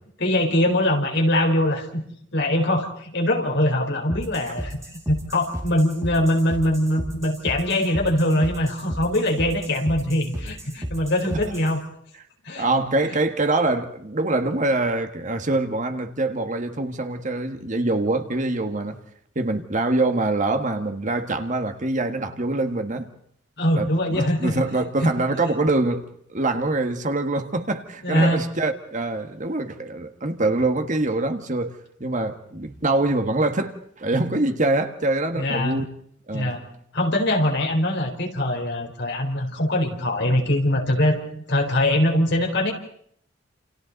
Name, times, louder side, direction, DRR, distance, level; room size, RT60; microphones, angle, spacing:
voice 1, 0.2-2.0 2.3-11.8 12.4-12.7 13.1-13.2 23.6-24.6 25.0-25.1 28.0-28.4 35.3-35.8 36.3-36.6 36.9-42.7, left 1 dB, 65° left, 4.4 m, -22 dB
sound 1, 4.1-11.8, equal, 15° right, 4.6 m, -34 dB
voice 2, 12.6-19.0 19.3-23.1 23.8-26.0 26.3-35.8 36.3-36.5, right 2 dB, 40° right, 1.7 m, -24 dB
29.5 x 28.5 x 4.1 m
head